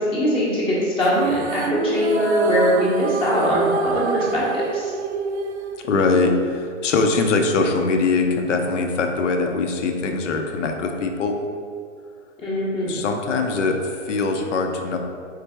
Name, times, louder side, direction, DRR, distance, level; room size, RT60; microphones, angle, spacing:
voice 1, 0.1-4.9 12.4-13.0, equal, 15° left, -6 dB, 0.8 m, -22 dB
sound 1, 1.0-6.5, right 5 dB, 60° right, 0.5 m, -26 dB
voice 2, 5.8-11.4 12.9-15.0, left 3 dB, 70° left, 4 dB, 0.6 m, -22 dB
4.0 x 3.3 x 3.3 m, 2.2 s
hypercardioid pair, 125°, 38 cm